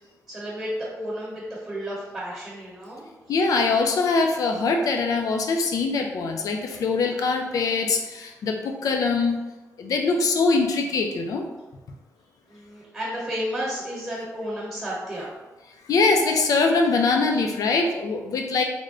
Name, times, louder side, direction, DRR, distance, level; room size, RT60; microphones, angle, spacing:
voice 1, 0.3-3.1 12.5-15.3, equal, 20° right, -7 dB, 1.1 m, -32 dB
voice 2, 3.3-9.4 9.8-11.5 15.8-18.6, left 4 dB, 80° left, 3 dB, 0.5 m, -23 dB
3.4 x 2.1 x 3.7 m, 1.1 s
wide cardioid pair, 150°, 6 cm